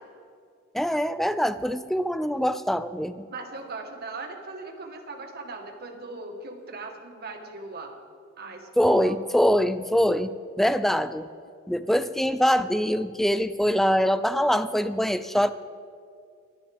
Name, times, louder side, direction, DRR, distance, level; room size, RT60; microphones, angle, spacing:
voice 1, 0.7-3.3 8.8-11.3 11.7-15.5, equal, ahead, 12 dB, 0.4 m, -23 dB
voice 2, 3.3-7.9 8.4-9.2, right 3 dB, 50° right, 4 dB, 1.5 m, -39 dB
23.0 x 10.0 x 3.5 m, 2.3 s
head